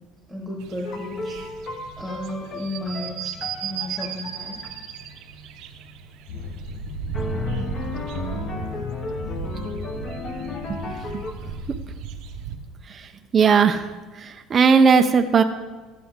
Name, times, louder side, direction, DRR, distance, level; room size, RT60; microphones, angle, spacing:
voice 1, 0.3-1.3 2.0-3.3 3.6-4.6, left 1 dB, ahead, -3 dB, 1.3 m, -33 dB
sound 1, 0.6-12.6, right 7 dB, 60° right, 0.7 m, -36 dB
sound 2, 0.8-5.2 7.1-11.3, left 3 dB, 30° left, 0.9 m, -35 dB
sound 3, 6.3-13.1, left 5 dB, 70° left, 0.9 m, -37 dB
voice 2, 12.9-13.9 14.2-15.4, right 5 dB, 25° right, 6 dB, 0.4 m, -18 dB
12.5 x 9.5 x 3.6 m, 1.3 s
cardioid pair, 165°, 0 cm